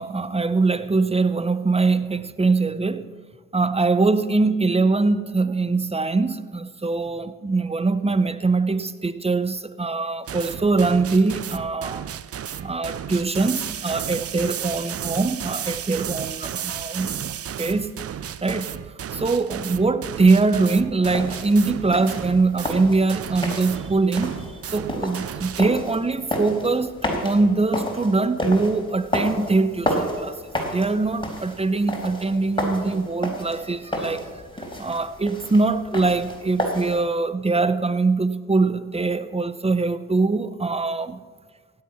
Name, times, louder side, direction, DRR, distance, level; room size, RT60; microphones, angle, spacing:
voice 1, 0.0-3.1 3.5-12.1 12.6-17.2 17.6-17.9 18.4-18.7 19.1-24.4 24.7-26.9 27.2-34.3 34.8-41.2, right 3 dB, 15° right, 0.8 m, -22 dB
sound 1, 10.3-25.6, right 9 dB, 40° right, 0.6 m, -33 dB
sound 2, 21.0-37.0, equal, 15° left, 4.3 m, -31 dB
16.0 x 9.6 x 5.8 m
hypercardioid pair, 40°, 35 cm